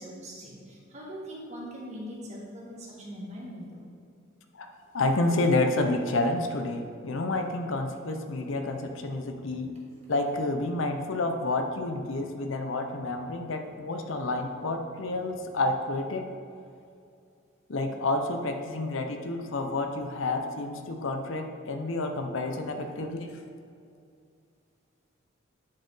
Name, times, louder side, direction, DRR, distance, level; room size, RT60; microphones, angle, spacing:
voice 1, 0.0-3.8, equal, 35° right, -3 dB, 1.4 m, -41 dB
voice 2, 4.9-9.8 10.1-16.3 17.7-23.3, left 2 dB, 75° left, 5 dB, 0.6 m, -29 dB
9.6 x 4.3 x 4.0 m, 2.4 s
head